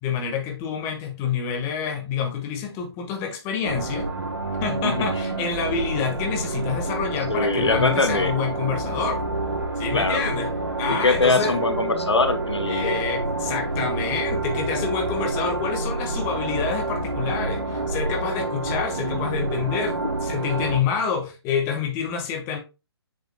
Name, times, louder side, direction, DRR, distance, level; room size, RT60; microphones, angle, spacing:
voice 1, 0.0-4.1 4.6-9.2 9.8-10.5 10.8-11.6 12.7-22.6, left 6 dB, 20° left, 1.5 m, -27 dB
sound 1, 3.6-20.8, right 2 dB, 70° right, 3.7 m, -28 dB
voice 2, 4.8-5.4 7.3-8.3 9.9-10.2 10.9-13.0, left 3 dB, 85° left, 1.1 m, -23 dB
7.2 x 6.9 x 2.2 m
figure-of-eight pair, 135°, 14 cm